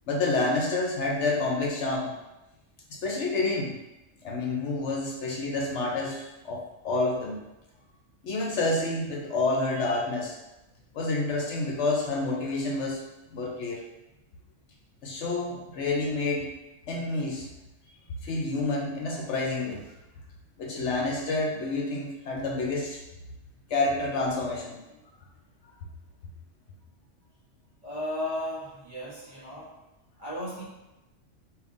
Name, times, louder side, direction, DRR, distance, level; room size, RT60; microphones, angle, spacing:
voice 1, 0.1-2.2 2.9-3.8 4.2-7.4 8.2-10.4 10.9-13.0 13.3-13.8 15.0-16.5 16.9-17.5 18.2-19.8 20.6-23.0 23.7-24.8, left 2 dB, 65° left, 0 dB, 0.9 m, -28 dB
voice 2, 27.8-29.8 30.2-30.6, left 1 dB, 35° right, -7 dB, 1.0 m, -35 dB
4.9 x 2.9 x 2.5 m, 0.97 s
omnidirectional pair, 1.3 m